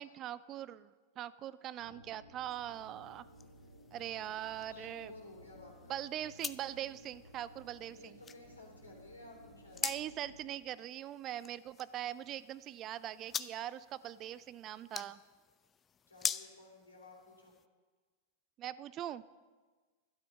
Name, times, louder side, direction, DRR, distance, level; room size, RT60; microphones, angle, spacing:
voice 1, 0.0-3.3 3.9-5.1 5.9-8.2 9.8-15.2 18.6-19.2, right 12 dB, 35° right, 18 dB, 0.4 m, -42 dB
sound 1, 1.8-10.5, equal, 75° right, 4.7 m, -58 dB
sound 2, 2.5-17.7, left 7 dB, 20° left, 0.5 m, -46 dB
voice 2, 4.7-6.0 7.9-9.8 16.1-17.5, left 2 dB, 80° left, -1 dB, 3.2 m, -55 dB
12.5 x 12.0 x 5.4 m, 1.4 s
figure-of-eight pair, 90°, 0 cm